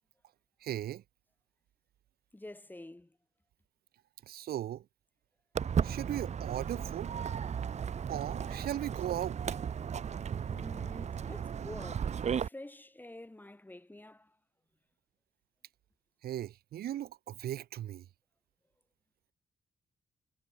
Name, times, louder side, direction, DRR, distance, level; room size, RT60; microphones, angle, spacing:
voice 1, 0.6-1.0 4.2-4.9 5.8-7.1 8.1-9.4 10.9-11.1 16.2-18.1, right 12 dB, 85° right, 0.9 m, -37 dB
voice 2, 2.3-3.2 10.5-14.4, left 1 dB, 10° left, 3.2 m, -48 dB
Walk footsteps, 5.5-12.5, right 7 dB, 45° right, 0.7 m, -35 dB
cardioid pair, 95°, 15 cm